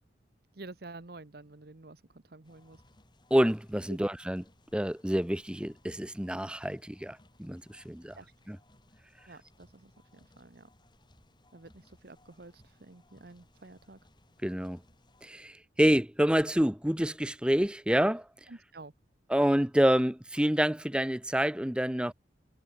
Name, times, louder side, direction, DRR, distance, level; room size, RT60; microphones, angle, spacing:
voice 1, 0.5-2.8 3.9-4.0 8.1-8.3 9.3-10.7 11.5-14.0 18.5-18.9, right 2 dB, 55° right, 1.1 m, -49 dB
sound 1, 2.4-15.3, left 1 dB, 25° left, 5.2 m, -63 dB
voice 2, 3.3-4.4 4.7-8.2 8.5-8.6 14.4-14.8 15.2-18.3 19.3-22.1, equal, 5° right, 0.7 m, -27 dB
head